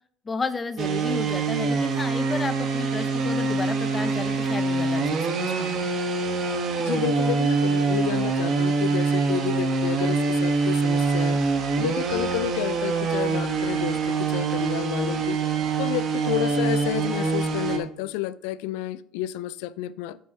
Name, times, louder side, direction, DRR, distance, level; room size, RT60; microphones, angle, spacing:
voice 1, 0.3-5.8, left 4 dB, 25° left, 0.9 m, -32 dB
sound 1, 0.8-17.8, right 4 dB, 50° right, 1.3 m, -24 dB
voice 2, 6.8-11.4 11.8-15.4 15.8-20.2, left 14 dB, 75° left, 0.4 m, -30 dB
6.5 x 5.3 x 6.0 m
hypercardioid pair, 75°, 0 cm